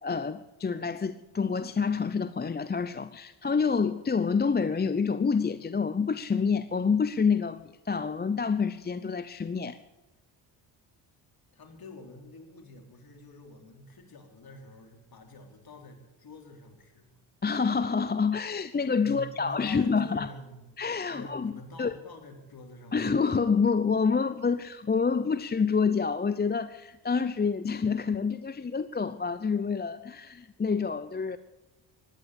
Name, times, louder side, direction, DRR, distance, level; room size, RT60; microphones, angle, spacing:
voice 1, 0.0-9.8 17.4-20.3 20.8-21.5 21.8-22.0 22.9-31.4, left 5 dB, 20° left, 13 dB, 0.7 m, -27 dB
voice 2, 11.5-17.2 19.0-20.8 21.1-23.1, left 2 dB, 45° left, 4 dB, 4.0 m, -47 dB
16.0 x 10.5 x 8.4 m, 1.0 s
supercardioid pair, 65°, 48 cm